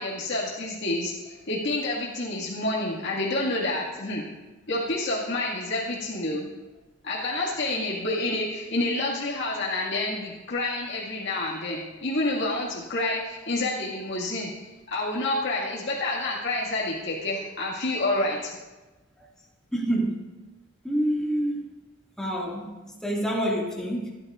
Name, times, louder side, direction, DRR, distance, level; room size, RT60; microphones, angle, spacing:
voice 1, 0.0-4.2 4.7-6.5 7.0-18.5, left 2 dB, 60° left, -6 dB, 2.1 m, -28 dB
voice 2, 19.7-20.4 20.8-21.7 22.2-24.2, right 1 dB, 5° left, -3 dB, 2.1 m, -28 dB
25.5 x 9.7 x 2.5 m, 1.2 s
head